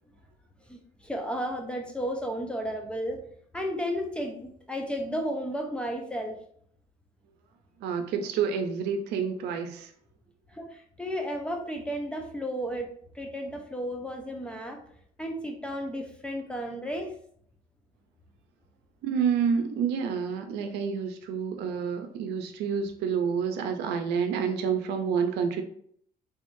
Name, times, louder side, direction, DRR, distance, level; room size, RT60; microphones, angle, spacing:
voice 1, 0.7-3.2 3.5-6.4 10.5-14.8 15.2-17.1, equal, 5° left, 3 dB, 0.6 m, -33 dB
voice 2, 7.8-9.9 19.0-25.6, right 6 dB, 85° right, 6 dB, 0.6 m, -28 dB
3.6 x 3.4 x 2.6 m, 0.63 s
cardioid pair, 110°, 17 cm